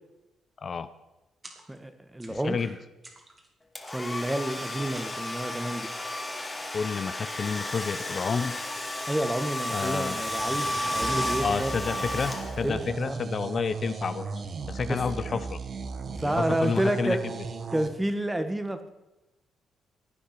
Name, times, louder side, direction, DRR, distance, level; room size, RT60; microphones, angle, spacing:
voice 1, 0.6-0.9 2.3-2.8 6.7-8.6 9.7-10.2 11.4-14.3 14.7-15.6 16.2-17.2, left 5 dB, 45° left, 12 dB, 0.7 m, -30 dB
sound 1, 1.4-1.9 2.2-2.7 3.0-3.5 3.9-4.5 4.9-5.6, right 2 dB, 25° right, 2.8 m, -51 dB
voice 2, 1.7-2.6 3.9-5.9 9.1-11.7 12.6-13.2 14.9-15.0 16.1-17.2 17.7-18.9, right 1 dB, 10° right, 9 dB, 1.5 m, -29 dB
Domestic sounds home sounds, 3.7-12.9, left 1 dB, 15° left, 2.2 m, -33 dB
sound 2, 11.0-17.9, right 4 dB, 50° right, 1.7 m, -36 dB
16.5 x 10.0 x 6.0 m, 0.99 s
cardioid pair, 90°, 0 cm